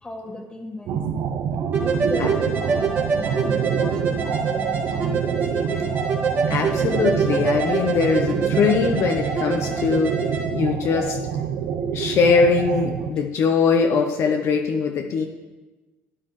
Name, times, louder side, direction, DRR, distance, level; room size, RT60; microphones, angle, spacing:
voice 1, 0.0-1.0 1.8-5.1 5.5-5.9 9.7-9.9 11.8-11.9, left 2 dB, 15° left, 2 dB, 1.6 m, -36 dB
sound 1, 0.9-13.1, right 7 dB, 70° right, 0.7 m, -26 dB
sound 2, 1.7-10.4, right 4 dB, 40° right, 2.1 m, -26 dB
voice 2, 6.5-10.1 10.5-11.2 11.9-15.3, left 5 dB, 60° left, 3 dB, 0.8 m, -21 dB
sound 3, 6.5-11.5, right 5 dB, 90° right, 1.9 m, -42 dB
12.0 x 9.5 x 3.2 m, 1.2 s
cardioid pair, 100°, 5 cm